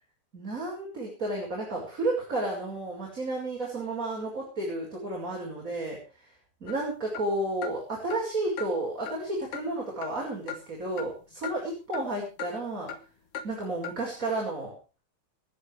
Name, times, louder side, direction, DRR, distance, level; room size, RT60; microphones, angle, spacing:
voice 1, 0.3-6.0 6.6-12.9 13.4-14.7, right 2 dB, 25° right, -2 dB, 6.2 m, -32 dB
sound 1, 6.7-6.8 7.1-7.3 7.6-7.8 8.1-8.2 8.6-8.7 9.1-9.2 9.5-9.7 10.0-10.2 10.5-10.6 11.0-11.1 11.4-11.5 11.9-12.1 12.4-12.5 12.9-13.0 13.3-13.5 13.8-14.0, left 7 dB, 55° left, 2.7 m, -37 dB
27.5 x 9.7 x 3.4 m, 0.34 s
omnidirectional pair, 3.4 m